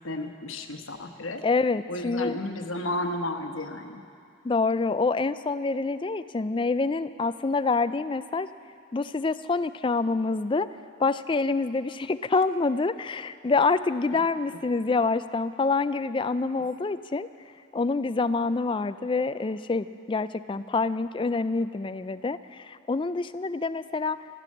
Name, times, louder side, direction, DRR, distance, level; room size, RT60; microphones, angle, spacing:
voice 1, 0.0-1.4 1.9-4.0 14.1-14.2, left 1 dB, 80° left, 6 dB, 1.1 m, -33 dB
voice 2, 1.4-2.4 4.4-8.5 8.9-10.7 11.0-17.3 17.7-24.2, left 3 dB, 25° left, 13 dB, 0.3 m, -26 dB
13.0 x 13.0 x 8.5 m, 2.3 s
head